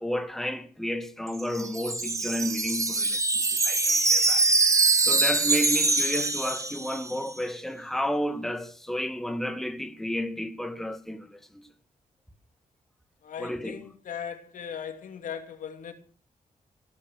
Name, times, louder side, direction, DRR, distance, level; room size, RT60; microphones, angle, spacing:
voice 1, 0.0-4.4 5.1-11.6 13.4-13.8, equal, ahead, 1.8 m, -32 dB
Wind chime, 1.3-7.3, right 3 dB, 25° right, 2.0 m, -24 dB
voice 2, 13.2-15.9, left 8 dB, 85° left, 2.8 m, -38 dB
16.5 x 12.5 x 6.5 m
cardioid pair, 100°, 13 cm